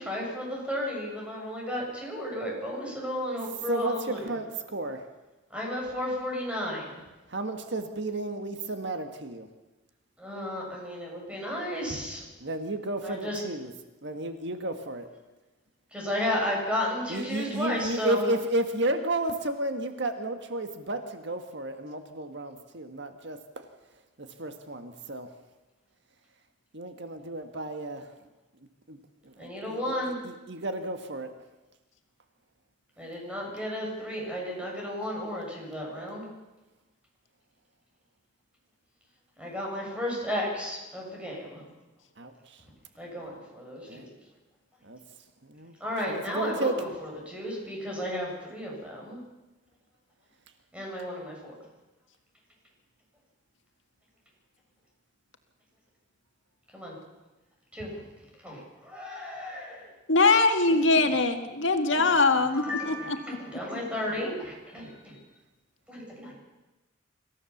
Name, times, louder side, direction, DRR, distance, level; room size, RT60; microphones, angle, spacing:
voice 1, 0.0-4.2 5.5-7.0 10.2-12.2 13.0-13.4 15.9-18.3 29.4-30.2 33.0-36.3 39.4-41.6 43.0-44.0 45.8-49.2 50.7-51.5 56.7-56.9 57.7-57.9 58.4-59.9 60.7-61.0 61.9-62.0 62.5-65.2 65.9-66.3, left 1 dB, 5° right, -2 dB, 7.4 m, -33 dB
voice 2, 3.7-5.1 7.3-9.5 12.4-13.7 14.0-15.1 17.1-23.6 24.2-25.3 26.7-28.1 28.9-29.0 29.2-29.8 30.0-31.3 42.2-42.6 43.9-44.0 44.8-45.0 45.4-45.7 46.1-46.8, right 2 dB, 65° right, 7 dB, 1.6 m, -32 dB
voice 3, 60.1-63.4, left 3 dB, 75° left, 6 dB, 1.8 m, -22 dB
26.0 x 15.0 x 7.2 m, 1.1 s
head